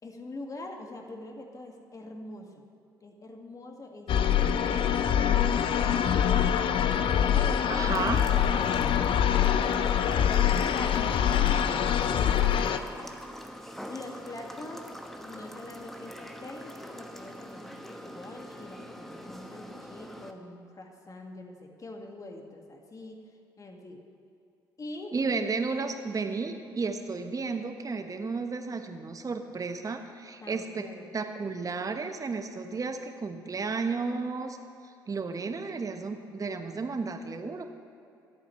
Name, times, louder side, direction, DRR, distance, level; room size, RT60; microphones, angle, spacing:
voice 1, 0.0-2.7 3.0-5.0 5.4-6.5 7.3-10.3 10.6-13.1 13.9-14.9 15.2-23.2 23.6-24.0 24.8-25.2 25.6-25.8 30.4-31.1, left 2 dB, 30° left, 2 dB, 2.0 m, -44 dB
sound 1, 4.1-12.8, left 9 dB, 50° left, 0.7 m, -24 dB
sound 2, 7.1-20.3, equal, ahead, 1.2 m, -44 dB
voice 2, 7.7-8.2 25.1-30.9 31.1-34.6 35.1-37.6, right 4 dB, 30° right, 6 dB, 1.2 m, -33 dB
25.5 x 8.5 x 3.2 m, 2.7 s
hypercardioid pair, 50°, 11 cm